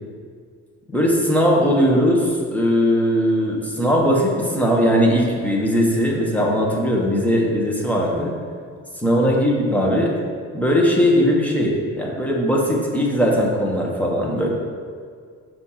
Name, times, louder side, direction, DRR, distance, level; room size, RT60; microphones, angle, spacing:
voice 1, 0.9-8.3 9.0-10.1 10.5-14.5, equal, 5° left, -2 dB, 1.1 m, -19 dB
6.1 x 4.2 x 5.7 m, 2.1 s
cardioid pair, 130°, 29 cm